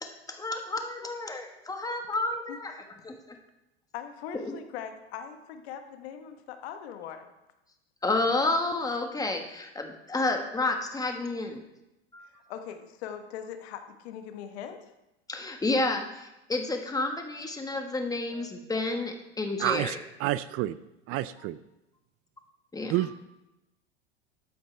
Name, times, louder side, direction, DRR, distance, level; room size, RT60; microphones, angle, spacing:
voice 1, 0.0-2.7 3.0-3.1 4.4-4.6 8.0-11.6 12.1-12.3 15.3-20.0 22.7-22.9, left 2 dB, 10° left, 4 dB, 1.5 m, -30 dB
voice 2, 3.9-7.3 12.2-14.9, left 8 dB, 70° left, 7 dB, 1.3 m, -41 dB
voice 3, 19.6-20.8 21.1-21.6 22.9-23.3, right 15 dB, 45° right, 16 dB, 0.5 m, -29 dB
13.0 x 8.6 x 3.4 m, 0.93 s
hypercardioid pair, 95°, 33 cm